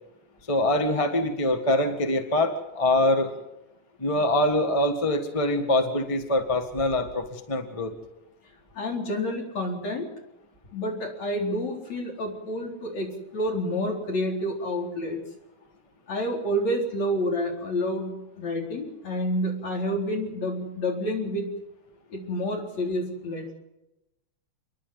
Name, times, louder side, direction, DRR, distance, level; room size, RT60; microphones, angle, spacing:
voice 1, 0.5-3.3 4.0-7.9, left 1 dB, 15° left, 5 dB, 1.2 m, -24 dB
voice 2, 8.8-10.1 10.7-15.2 16.1-21.5 22.1-23.5, equal, 65° left, 0 dB, 5.5 m, -29 dB
28.5 x 11.5 x 9.4 m, 0.91 s
omnidirectional pair, 3.4 m